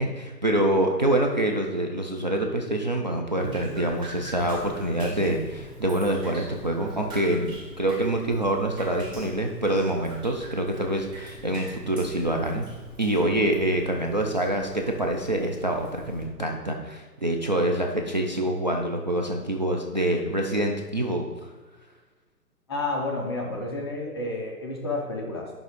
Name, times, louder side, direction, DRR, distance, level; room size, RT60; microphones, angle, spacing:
voice 1, 0.0-12.7 13.0-21.5, right 1 dB, 30° right, 1 dB, 0.4 m, -26 dB
Drip, 3.4-16.2, right 2 dB, 10° right, 1.1 m, -42 dB
voice 2, 22.7-25.5, left 2 dB, 15° left, 0 dB, 0.6 m, -30 dB
10.5 x 3.6 x 5.0 m, 1.3 s
hypercardioid pair, 140°, 48 cm